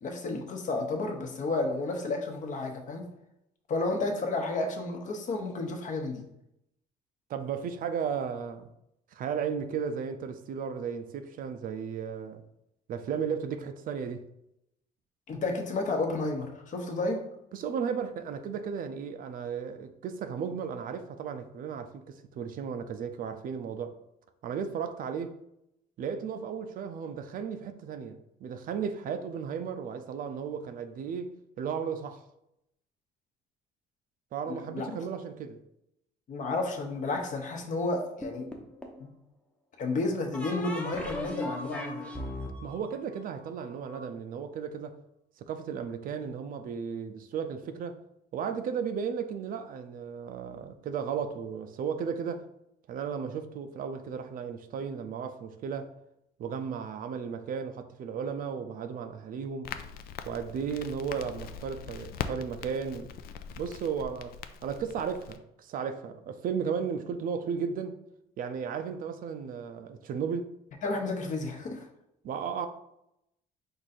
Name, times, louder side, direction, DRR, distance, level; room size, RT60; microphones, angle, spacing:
voice 1, 0.0-3.1 3.7-6.2 15.3-17.3 34.5-34.9 36.3-38.5 39.0-39.1 39.8-42.1 70.8-71.9, left 2 dB, 50° left, 0.9 m, -31 dB
voice 2, 7.3-8.7 9.1-12.4 12.9-14.2 17.5-23.9 24.4-25.3 26.0-32.2 34.3-35.6 42.6-44.9 45.4-48.0 48.3-52.4 52.9-55.9 56.4-59.7 60.3-63.1 63.6-64.3 64.6-68.0 68.4-70.5 72.2-72.7, right 6 dB, 55° right, 0.5 m, -35 dB
sound 1, 38.2-39.1 40.3-44.0, left 1 dB, 5° left, 0.7 m, -38 dB
Crackle, 59.6-65.4, left 8 dB, 65° left, 0.4 m, -41 dB
4.7 x 2.6 x 4.2 m
cardioid pair, 110°, 17 cm